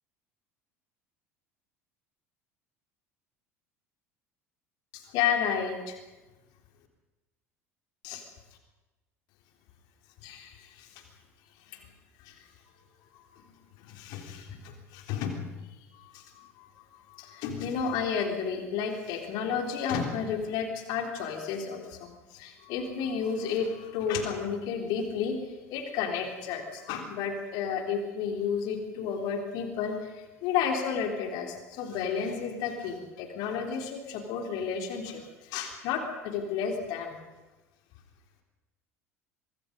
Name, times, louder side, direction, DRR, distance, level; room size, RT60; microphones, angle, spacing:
voice 1, 4.9-6.0 8.0-8.2 10.2-10.9 11.7-11.8 12.2-12.4 13.3-13.4 13.8-15.4 15.9-16.7 17.1-25.4 25.7-37.2, left 6 dB, 55° left, 4 dB, 3.8 m, -32 dB
25.0 x 21.0 x 5.4 m, 1.1 s
figure-of-eight pair, 70°, 8 cm